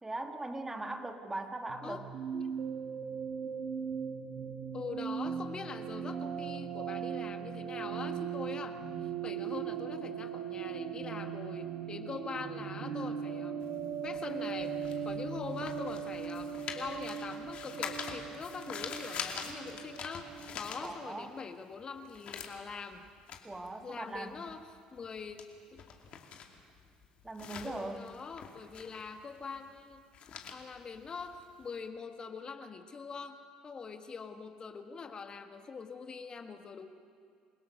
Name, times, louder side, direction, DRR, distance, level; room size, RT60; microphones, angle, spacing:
voice 1, 0.0-2.1 20.8-21.3 23.4-24.4 27.2-28.2, right 2 dB, 15° right, 6 dB, 1.8 m, -40 dB
sound 1, 1.7-21.2, right 7 dB, 65° right, 1.8 m, -39 dB
voice 2, 4.7-13.6 14.0-20.3 20.5-23.1 23.8-24.6 24.9-25.8 27.6-30.0 30.5-36.9, left 5 dB, 35° left, 7 dB, 1.5 m, -43 dB
sound 2, 13.6-21.4 21.7-31.8, left 7 dB, 55° left, 2.6 m, -45 dB
28.5 x 16.5 x 6.6 m, 2.2 s
supercardioid pair, 85°, 2 cm